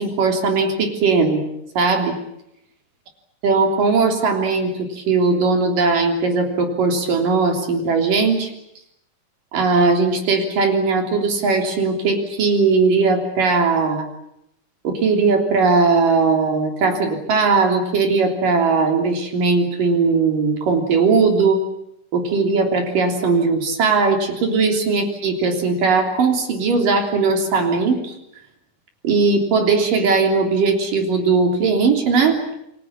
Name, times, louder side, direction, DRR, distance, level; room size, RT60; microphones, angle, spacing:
voice 1, 0.0-1.4 1.8-2.2 3.4-8.5 9.5-14.0 14.8-21.6 22.1-28.2 29.0-32.4, right 4 dB, 75° right, 3 dB, 5.0 m, -18 dB
29.5 x 22.5 x 7.4 m, 0.79 s
omnidirectional pair, 3.9 m